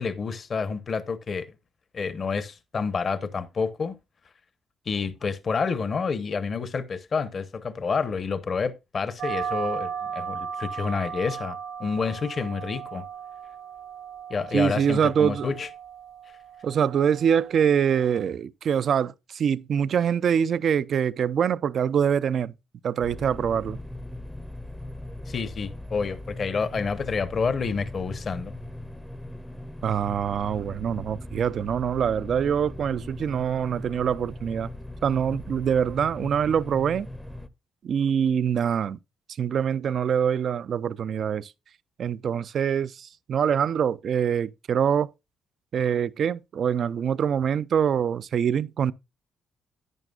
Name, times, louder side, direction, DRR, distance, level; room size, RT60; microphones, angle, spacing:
voice 1, 0.0-1.5 1.9-3.9 4.9-13.0 14.3-15.7 25.3-28.5, left 5 dB, 45° left, 0.8 m, -29 dB
sound 1, 9.2-18.3, right 7 dB, 85° right, 2.1 m, -36 dB
voice 2, 14.5-15.5 16.6-22.5 22.8-23.8 29.8-34.7 35.0-37.1 37.8-39.0 39.4-41.5 42.0-45.1 45.7-48.9, right 8 dB, 60° right, 0.4 m, -24 dB
sound 2, 23.0-37.5, left 1 dB, ahead, 0.6 m, -39 dB
11.0 x 9.0 x 2.3 m
cardioid pair, 90°, 0 cm